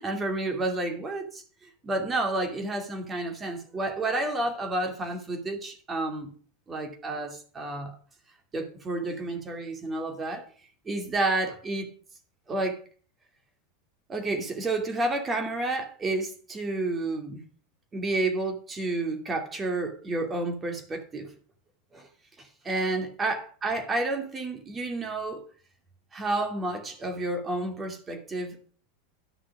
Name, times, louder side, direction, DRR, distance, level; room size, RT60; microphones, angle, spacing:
voice 1, 0.0-1.4 1.8-6.3 6.7-7.9 8.5-10.5 10.9-11.9 12.5-12.8 14.1-17.4 17.9-21.3 21.9-22.1 22.4-25.4 26.1-28.7, right 2 dB, 20° right, 2.6 m, -30 dB
11.0 x 6.2 x 6.0 m
figure-of-eight pair, 85°, 0 cm